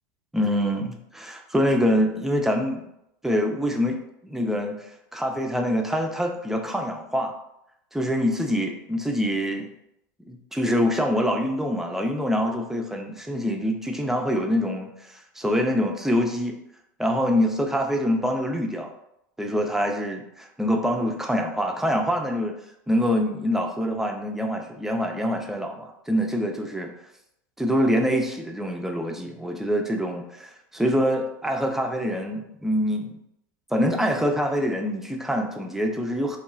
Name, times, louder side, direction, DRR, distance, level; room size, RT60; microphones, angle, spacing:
voice 1, 0.3-2.8 3.2-4.0 4.2-7.3 7.9-9.7 10.3-16.6 17.0-18.9 19.4-22.6 22.9-26.9 27.6-33.2 33.7-36.4, equal, 5° right, 3 dB, 0.4 m, -25 dB
2.9 x 2.2 x 2.3 m, 0.79 s
hypercardioid pair, 90°, 10 cm